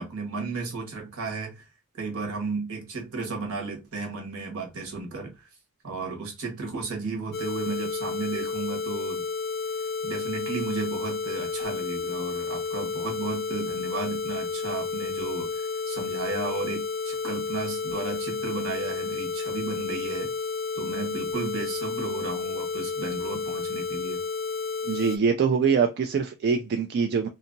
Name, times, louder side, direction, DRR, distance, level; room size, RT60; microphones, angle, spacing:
voice 1, 0.0-1.6 1.9-5.5 5.8-9.2 10.0-20.3 20.7-24.2, right 4 dB, 70° right, 1.2 m, -34 dB
sound 1, 7.3-25.2, left 5 dB, 45° left, 0.5 m, -31 dB
voice 2, 24.8-27.3, right 6 dB, 50° right, 0.3 m, -24 dB
2.7 x 2.5 x 2.5 m
head